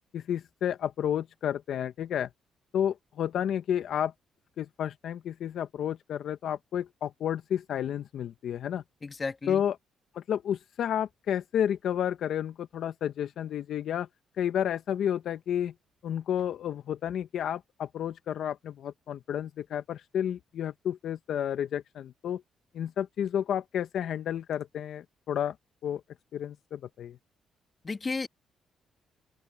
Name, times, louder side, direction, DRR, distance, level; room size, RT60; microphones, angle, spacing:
voice 1, 0.1-2.3 2.7-4.1 4.6-8.8 9.5-9.8 10.1-14.1 14.4-15.7 16.0-22.4 22.7-25.5 25.8-26.0 26.3-27.2, left 9 dB, 70° left, 1.0 m, -31 dB
voice 2, 9.0-9.6 27.8-28.3, left 4 dB, 30° left, 2.3 m, -33 dB
open air
cardioid pair, 90°, 0 cm